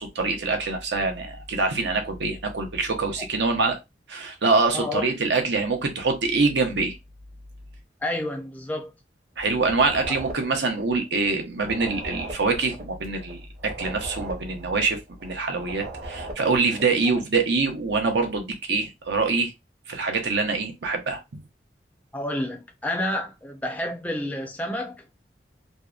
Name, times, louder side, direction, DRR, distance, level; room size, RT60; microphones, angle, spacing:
voice 1, 0.0-3.8 4.1-7.0 9.4-19.5 19.9-21.4, right 4 dB, 75° right, 0.7 m, -25 dB
voice 2, 4.7-5.1 8.0-8.9 22.1-25.1, left 1 dB, 10° left, 0.4 m, -29 dB
sound 1, 9.6-11.3 11.6-15.3 15.6-16.9, right 2 dB, 40° right, 0.7 m, -38 dB
2.7 x 2.1 x 2.3 m
head